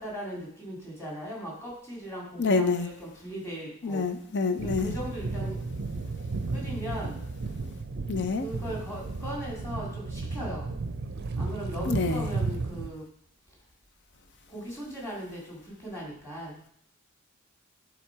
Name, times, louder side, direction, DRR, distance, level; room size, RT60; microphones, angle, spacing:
voice 1, 0.0-4.1 4.6-5.7 6.5-7.2 8.4-10.7 11.4-13.0 14.5-16.6, equal, 15° left, 2.5 m, -38 dB
voice 2, 2.4-2.9 3.8-5.0 8.1-8.5 11.9-12.3, left 4 dB, 50° left, 0.6 m, -27 dB
sound 1, 4.6-12.9, right 3 dB, 50° right, 0.5 m, -34 dB
10.0 x 3.7 x 4.6 m
head